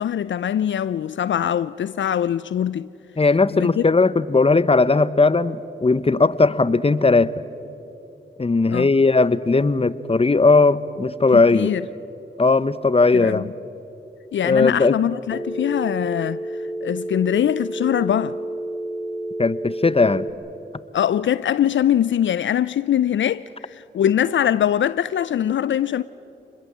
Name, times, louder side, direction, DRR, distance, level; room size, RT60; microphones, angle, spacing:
voice 1, 0.0-2.9 3.5-3.9 8.7-8.9 11.5-11.8 13.1-13.5 14.3-16.4 16.8-18.4 20.9-26.0, left 10 dB, 70° left, 0.5 m, -22 dB
voice 2, 3.2-7.3 8.4-11.7 12.4-13.5 14.4-15.0 19.4-20.3, left 3 dB, 30° left, 0.9 m, -18 dB
Telephone, 15.3-20.3, right 1 dB, 5° right, 2.9 m, -30 dB
28.0 x 21.5 x 7.4 m
supercardioid pair, 40°, 20 cm